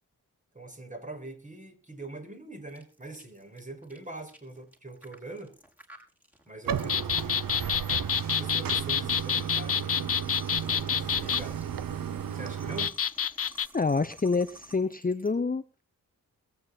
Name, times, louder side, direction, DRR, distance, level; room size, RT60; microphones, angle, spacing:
voice 1, 0.5-5.5 6.5-7.4 8.1-10.1 10.9-11.6 12.3-12.9, right 2 dB, 25° right, 5.5 m, -43 dB
sound 1, 2.7-15.3, equal, 5° right, 5.6 m, -52 dB
Bathtub (filling or washing), 6.7-12.9, right 8 dB, 85° right, 1.1 m, -34 dB
sound 2, 6.9-11.4 12.8-13.7, left 8 dB, 45° left, 0.6 m, -28 dB
voice 2, 13.7-15.6, left 4 dB, 25° left, 0.9 m, -27 dB
22.0 x 9.5 x 4.2 m
cardioid pair, 55°, 33 cm